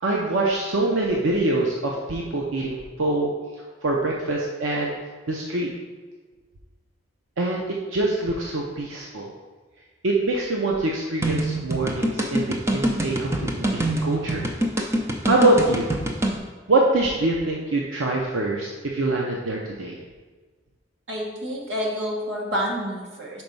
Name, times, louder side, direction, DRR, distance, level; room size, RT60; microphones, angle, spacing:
voice 1, 0.0-3.3 3.8-4.9 5.3-5.7 7.4-9.3 10.0-14.4 15.2-15.9 16.7-20.0, right 2 dB, 85° right, -2 dB, 0.7 m, -24 dB
sound 1, 11.2-16.4, right 1 dB, 15° right, 0.5 m, -25 dB
voice 2, 21.1-23.4, equal, 65° right, -3 dB, 1.5 m, -28 dB
5.3 x 4.5 x 5.3 m, 1.4 s
head